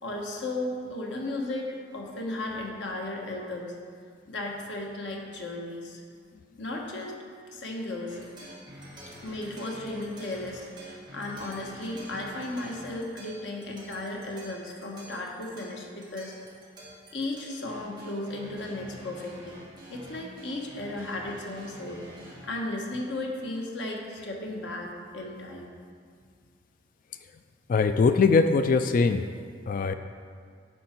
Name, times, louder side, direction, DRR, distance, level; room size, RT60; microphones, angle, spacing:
voice 1, 0.0-3.7 4.3-6.0 6.6-7.2 7.5-8.2 9.2-16.3 17.1-19.6 19.9-25.7, left 2 dB, 75° left, 0 dB, 1.3 m, -35 dB
sound 1, 8.1-22.5, equal, 25° right, 2.0 m, -47 dB
voice 2, 27.7-29.3 29.7-29.9, left 4 dB, 50° left, 9 dB, 0.3 m, -21 dB
9.4 x 6.3 x 4.5 m, 2.1 s
head